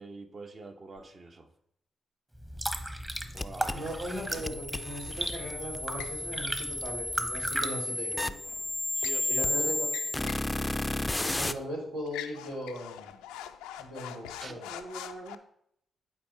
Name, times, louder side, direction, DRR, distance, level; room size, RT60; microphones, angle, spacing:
voice 1, 0.0-1.5 3.3-3.9 8.9-9.7 14.4-15.4, right 3 dB, 50° right, 5 dB, 1.1 m, -44 dB
sound 1, 2.4-7.7, right 1 dB, 15° right, 1.1 m, -36 dB
sound 2, 3.4-11.5, left 1 dB, 20° left, 0.4 m, -33 dB
voice 2, 3.7-8.3 9.3-9.9 11.2-13.2 13.8-14.7, equal, 90° right, -6 dB, 3.3 m, -38 dB
sound 3, 6.0-6.2 8.4-9.2 9.8-10.5 10.8-11.0 11.4-11.7 12.1-15.4, left 11 dB, 85° left, 0.4 m, -43 dB
11.0 x 4.6 x 3.4 m, 0.71 s
hypercardioid pair, 40°, 0 cm